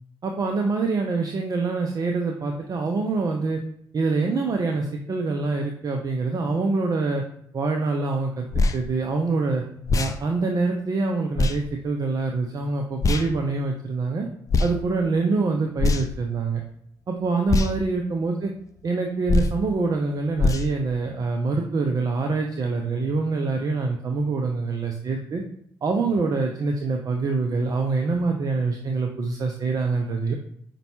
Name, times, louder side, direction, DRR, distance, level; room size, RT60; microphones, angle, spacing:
voice 1, 0.2-3.6 3.9-7.2 7.5-8.5 8.7-9.6 9.9-14.3 14.6-16.6 17.1-18.5 18.8-25.4 25.8-30.4, right 3 dB, 40° right, 2 dB, 0.5 m, -25 dB
sound 1, 8.5-8.8 9.8-10.2 11.4-11.6 13.0-13.3 14.5-14.7 15.8-16.2 17.5-17.7 19.3-19.6 20.4-20.7, left 3 dB, 35° left, 0.4 m, -21 dB
5.1 x 2.2 x 2.9 m, 0.69 s
hypercardioid pair, 50°, 9 cm